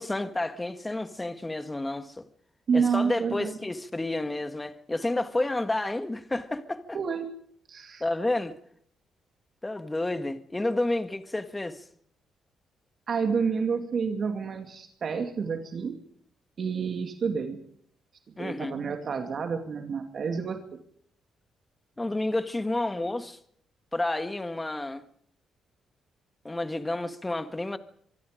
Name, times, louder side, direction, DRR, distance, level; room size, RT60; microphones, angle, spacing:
voice 1, 0.0-2.3 2.7-7.0 8.0-8.6 9.6-11.8 18.4-18.7 22.0-23.4 23.9-25.1 26.4-27.8, left 2 dB, 15° left, 1.7 m, -30 dB
voice 2, 2.7-3.6 6.9-7.3 7.7-8.0 13.1-16.0 16.6-17.6 18.4-20.6, right 6 dB, 55° right, 2.5 m, -29 dB
25.0 x 23.0 x 5.2 m
cardioid pair, 85°, 0 cm